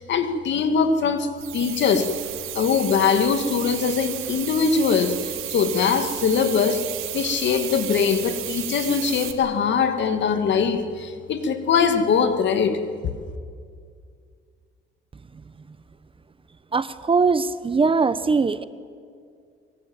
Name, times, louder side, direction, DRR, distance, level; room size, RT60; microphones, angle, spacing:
voice 1, 0.0-2.1 2.5-6.8 7.1-12.8, left 6 dB, 60° left, 8 dB, 2.4 m, -22 dB
sound 1, 1.4-9.3, right 12 dB, 85° right, 2.3 m, -33 dB
voice 2, 16.7-18.6, right 4 dB, 25° right, 14 dB, 1.0 m, -21 dB
23.5 x 23.5 x 8.9 m, 2.2 s
cardioid pair, 110°, 21 cm